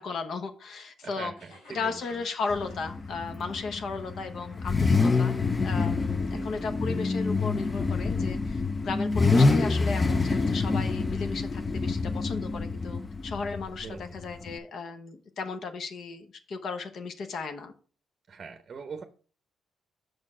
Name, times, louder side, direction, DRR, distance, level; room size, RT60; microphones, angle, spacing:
voice 1, 0.0-1.3 1.7-17.7, left 4 dB, 60° left, 0.8 m, -35 dB
voice 2, 1.0-2.2 6.3-6.7 13.8-14.2 18.3-19.0, right 5 dB, 45° right, 0.6 m, -42 dB
sound 1, 1.4-3.7, left 2 dB, 80° left, 3.6 m, -55 dB
Car / Idling / Accelerating revving vroom, 2.5-14.6, left 3 dB, 25° left, 0.4 m, -27 dB
6.2 x 4.5 x 4.8 m
cardioid pair, 90°, 0 cm